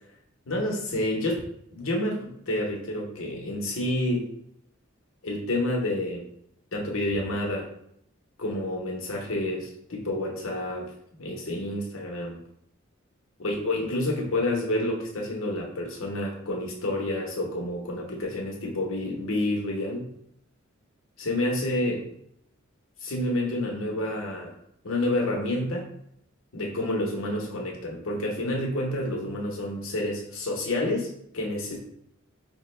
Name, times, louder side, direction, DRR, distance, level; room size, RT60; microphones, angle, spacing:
voice 1, 0.5-1.4 1.7-4.3 5.2-6.3 6.7-7.7 8.4-10.8 11.2-12.4 13.4-20.1 21.2-22.1 23.0-24.5 24.8-25.9 26.5-31.8, left 1 dB, 70° left, -1 dB, 1.0 m, -29 dB
4.8 x 2.2 x 3.2 m, 0.72 s
head